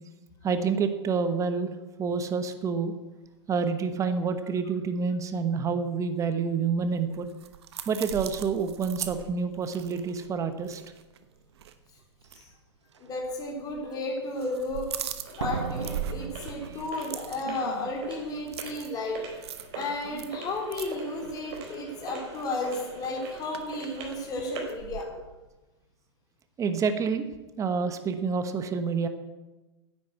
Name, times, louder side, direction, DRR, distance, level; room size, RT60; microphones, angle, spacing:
voice 1, 0.4-2.9 3.5-7.3 7.9-10.8 26.6-27.3 27.6-29.1, right 5 dB, 20° right, 9 dB, 1.1 m, -28 dB
sound 1, 6.8-11.3 11.5-11.7 12.2-12.4 13.3-13.9 14.2-25.0, right 9 dB, 70° right, 1.1 m, -41 dB
Slam, 12.2-12.3 12.9-13.3 15.4-17.3 17.5-17.6, right 6 dB, 85° right, 0.8 m, -36 dB
voice 2, 13.0-14.9 15.4-19.2 19.7-25.1, left 2 dB, 25° left, -1 dB, 3.7 m, -33 dB
sound 2, 14.6-24.8, right 2 dB, 45° right, 4.0 m, -43 dB
10.0 x 9.2 x 8.0 m, 1.1 s
hypercardioid pair, 110°, 15 cm